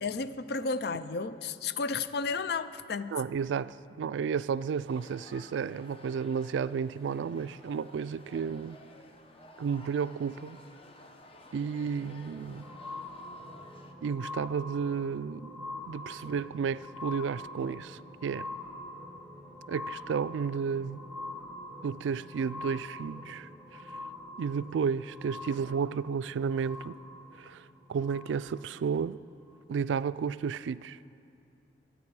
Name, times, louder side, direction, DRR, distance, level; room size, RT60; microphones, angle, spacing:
voice 1, 0.0-3.2, left 4 dB, 60° left, 0.5 m, -33 dB
voice 2, 3.1-8.8 9.6-10.6 11.5-12.7 14.0-18.5 19.7-21.0 21.8-23.5 24.4-26.9 27.4-27.6 27.9-29.2 29.7-31.0, right 6 dB, 90° right, 0.3 m, -32 dB
sound 1, 4.9-13.9, left 1 dB, 30° left, 0.9 m, -54 dB
sound 2, 11.9-28.8 29.5-29.6, left 2 dB, 5° left, 1.6 m, -44 dB
24.0 x 9.2 x 4.7 m
head